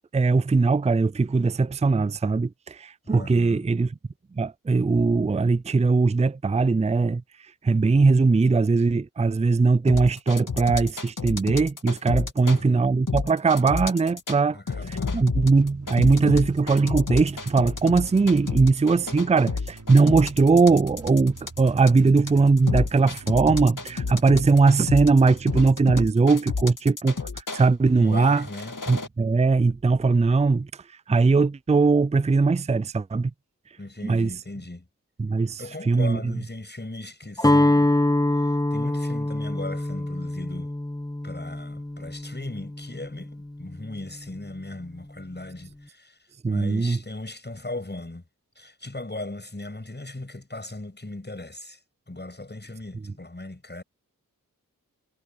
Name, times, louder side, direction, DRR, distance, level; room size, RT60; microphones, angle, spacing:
voice 1, 0.1-3.9 4.3-7.2 7.6-28.5 28.9-33.3 34.0-34.3 35.2-36.3 46.4-47.0, right 4 dB, 20° right, 0.5 m, -20 dB
voice 2, 3.0-3.7 12.4-12.9 14.5-15.3 16.0-16.5 28.0-28.8 33.8-34.9 35.6-37.9 38.3-40.7 41.2-46.2 46.5-48.2 48.6-51.8 52.1-53.8, left 2 dB, 30° left, 7.6 m, -38 dB
sound 1, 9.9-12.6 13.1-14.4 14.7-27.6 28.2-29.1, left 4 dB, 60° left, 2.4 m, -30 dB
sound 2, 15.5-26.4, right 3 dB, 60° right, 5.8 m, -46 dB
Guitar, 37.4-43.4, left 1 dB, 10° left, 1.6 m, -24 dB
cardioid pair, 40°, 35 cm